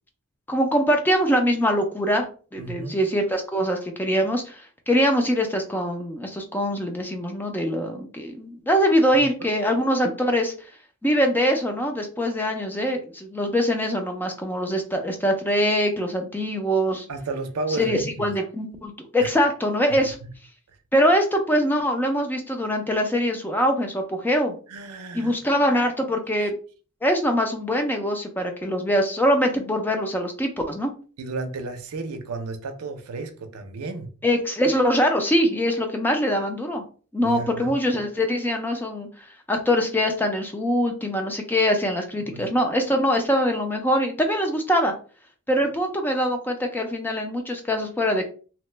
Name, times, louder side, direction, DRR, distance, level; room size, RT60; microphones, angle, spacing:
voice 1, 0.5-2.3 2.5-10.5 11.0-17.1 17.8-20.2 20.9-24.5 25.1-26.5 27.0-30.9 34.2-36.8 37.1-44.9 45.5-48.3, equal, 10° left, 4 dB, 0.4 m, -23 dB
voice 2, 2.6-2.9 9.1-9.5 17.1-18.3 19.2-19.3 19.9-20.3 24.7-25.4 26.4-26.5 31.2-34.1 37.2-37.7 42.2-42.5, right 3 dB, 90° right, 5 dB, 0.5 m, -33 dB
2.9 x 2.1 x 3.2 m, 0.39 s
head